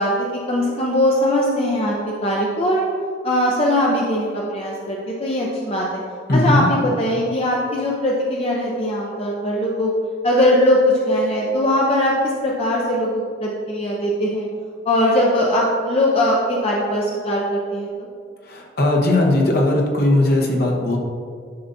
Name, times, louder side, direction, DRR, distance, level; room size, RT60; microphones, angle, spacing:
voice 1, 0.0-2.9 3.2-6.0 6.3-9.9 10.2-14.5 14.8-18.1, left 1 dB, 30° left, -2 dB, 0.6 m, -20 dB
voice 2, 6.3-6.7 18.4-21.0, left 1 dB, 55° left, 0 dB, 1.1 m, -18 dB
10.5 x 5.4 x 2.7 m, 2.1 s
head